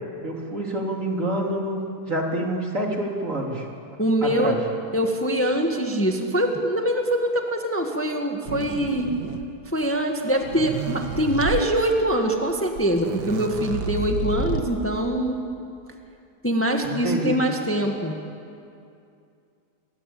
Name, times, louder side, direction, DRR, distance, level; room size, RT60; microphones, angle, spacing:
voice 1, 0.2-3.7 4.2-4.6 16.8-17.4, right 1 dB, 50° right, 0 dB, 3.8 m, -27 dB
voice 2, 4.0-4.6 4.9-9.1 9.7-15.4 16.4-18.2, equal, 10° left, 3 dB, 1.8 m, -23 dB
sound 1, 8.5-9.6 10.3-11.6 12.5-12.6 12.8-14.8, right 5 dB, 85° right, 1.9 m, -30 dB
29.0 x 23.5 x 8.7 m, 2.5 s
omnidirectional pair, 1.8 m